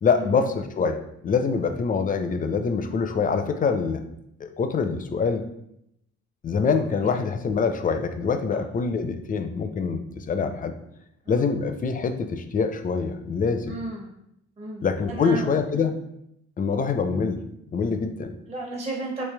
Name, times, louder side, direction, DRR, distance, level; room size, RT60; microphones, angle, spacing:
voice 1, 0.0-4.0 4.4-5.4 6.4-10.7 11.3-13.8 14.8-16.0 16.6-17.4 17.7-18.3, left 5 dB, 30° left, 8 dB, 0.4 m, -25 dB
voice 2, 13.7-14.1 14.6-15.5 18.5-19.2, right 2 dB, 20° right, -1 dB, 0.6 m, -34 dB
3.1 x 3.1 x 3.3 m, 0.78 s
cardioid pair, 90°, 30 cm